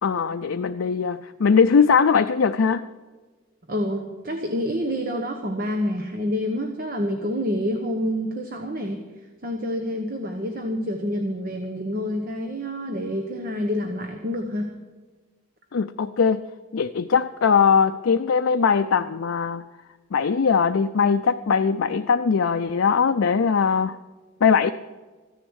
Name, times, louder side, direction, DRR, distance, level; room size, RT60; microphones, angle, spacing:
voice 1, 0.0-2.8 15.7-16.4 16.7-19.6 20.1-24.0 24.4-24.7, left 6 dB, 70° left, 7 dB, 0.4 m, -20 dB
voice 2, 3.7-9.1 9.4-14.7, equal, 45° right, 5 dB, 1.1 m, -27 dB
14.5 x 10.0 x 6.3 m, 1.3 s
head